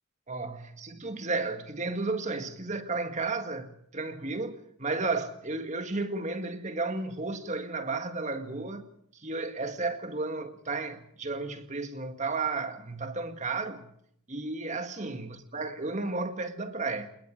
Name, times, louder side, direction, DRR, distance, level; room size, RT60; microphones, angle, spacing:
voice 1, 0.3-8.9 9.1-13.9 14.3-17.1, right 3 dB, 35° right, 1.9 m, -33 dB
28.5 x 20.5 x 4.9 m
head